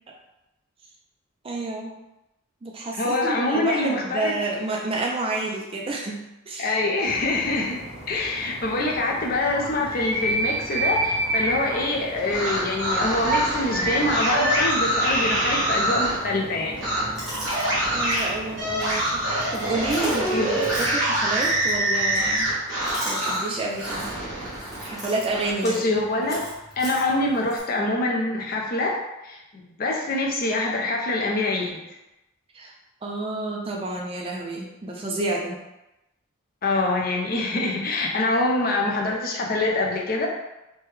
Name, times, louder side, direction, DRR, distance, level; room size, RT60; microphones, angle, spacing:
voice 1, 1.4-2.0 2.6-6.7 17.9-19.2 19.5-22.5 23.0-24.1 24.8-25.8 32.5-32.7 33.0-35.6, right 2 dB, 25° right, -1 dB, 0.3 m, -29 dB
voice 2, 3.0-4.4 6.6-7.8 8.1-16.8 20.3-20.5 25.6-26.4 26.8-29.0 29.2-31.8 36.6-40.3, left 2 dB, 40° left, -1 dB, 0.4 m, -25 dB
sound 1, 7.0-21.0, right 1 dB, 75° right, 0.8 m, -31 dB
sound 2, 12.2-16.2 16.8-17.0 17.4-23.5 23.8-25.5, right 1 dB, 55° right, 1.2 m, -25 dB
Chewing mastication, 17.1-27.6, right 1 dB, ahead, 0.9 m, -38 dB
3.2 x 2.2 x 3.2 m, 0.94 s
head